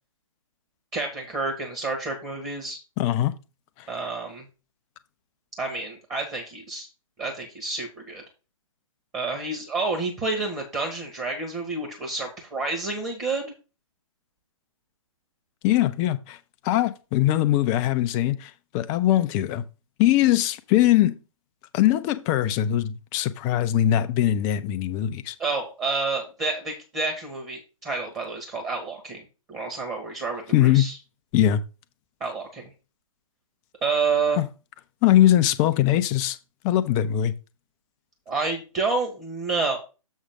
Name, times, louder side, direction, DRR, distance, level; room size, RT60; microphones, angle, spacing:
voice 1, 0.9-2.8 3.9-4.4 5.6-6.9 7.2-8.2 9.1-13.5 25.4-31.0 32.2-32.7 33.8-34.4 38.3-39.8, right 3 dB, 20° right, 1.6 m, -29 dB
voice 2, 3.0-3.3 3.8-3.9 15.6-16.4 16.6-19.6 20.0-21.2 21.7-25.3 30.5-30.9 31.3-31.6 34.4-34.5 35.0-36.4 36.6-37.3, left 12 dB, 15° left, 0.5 m, -21 dB
7.2 x 6.4 x 3.6 m
figure-of-eight pair, 135°, 18 cm